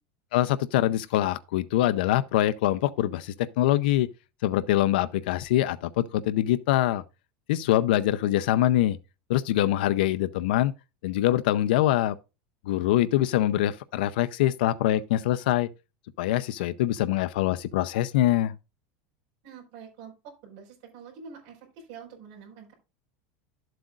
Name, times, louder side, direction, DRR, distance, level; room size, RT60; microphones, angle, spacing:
voice 1, 0.3-4.1 4.4-7.0 7.5-9.0 9.3-10.7 11.0-12.2 12.7-15.7 16.2-18.5, left 13 dB, 70° left, 0.6 m, -24 dB
voice 2, 19.4-22.7, right 6 dB, 50° right, 4.8 m, -46 dB
11.5 x 7.7 x 2.4 m
supercardioid pair, 175°, 5 cm